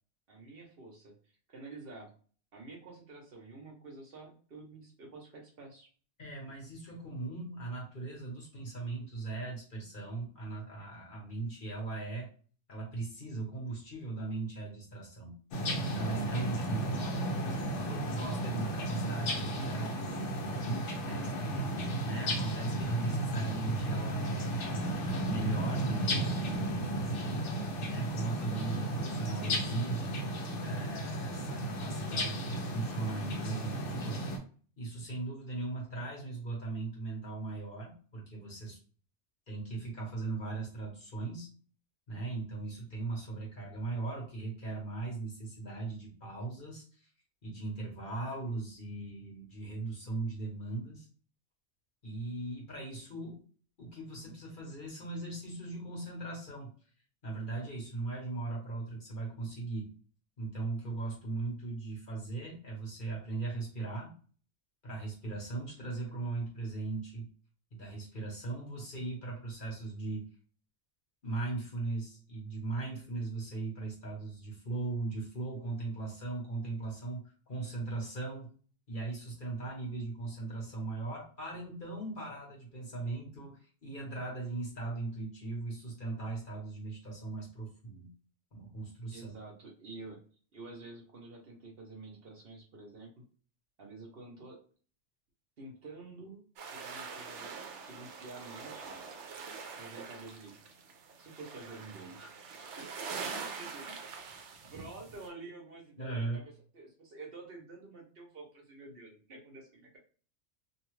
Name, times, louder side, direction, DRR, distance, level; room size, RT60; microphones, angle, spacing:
voice 1, 0.3-1.1 1.5-2.1 2.5-5.9 89.1-90.2 90.5-93.2 93.8-94.6 95.6-98.9 99.8-100.6 101.2-102.4 102.8-104.1 104.6-110.0, right 3 dB, 55° right, 0 dB, 1.0 m, -49 dB
voice 2, 6.2-12.3 12.7-15.3 15.8-17.3 17.8-21.6 22.0-24.6 25.0-27.3 27.8-30.1 30.6-34.2 34.8-38.8 39.5-41.5 42.1-47.1 47.4-51.1 52.0-53.4 53.8-56.7 57.2-59.9 60.4-64.1 64.8-67.3 67.7-70.2 71.2-78.5 78.9-88.1 88.5-89.3 106.0-106.4, right 3 dB, 45° left, -3 dB, 1.2 m, -39 dB
sound 1, 15.5-34.4, right 1 dB, 75° left, 1.0 m, -34 dB
sound 2, 96.6-105.3, right 5 dB, 80° right, 0.9 m, -44 dB
2.7 x 2.2 x 3.1 m, 0.41 s
omnidirectional pair, 1.2 m